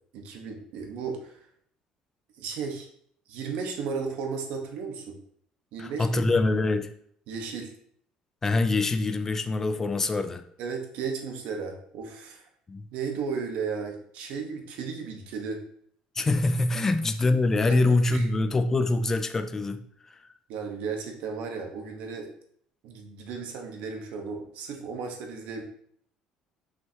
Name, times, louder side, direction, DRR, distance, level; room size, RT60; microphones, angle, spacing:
voice 1, 0.1-1.4 2.4-2.9 3.3-5.2 5.7-6.2 7.3-7.7 10.6-12.5 12.9-15.6 17.7-17.8 18.1-18.3 20.5-22.3 22.8-25.6, right 5 dB, 70° right, 3 dB, 1.3 m, -34 dB
voice 2, 5.8-6.9 8.4-10.4 12.7-12.8 16.2-19.8, left 2 dB, 20° left, 9 dB, 0.5 m, -24 dB
6.2 x 5.5 x 2.9 m, 0.63 s
cardioid pair, 145°, 2 cm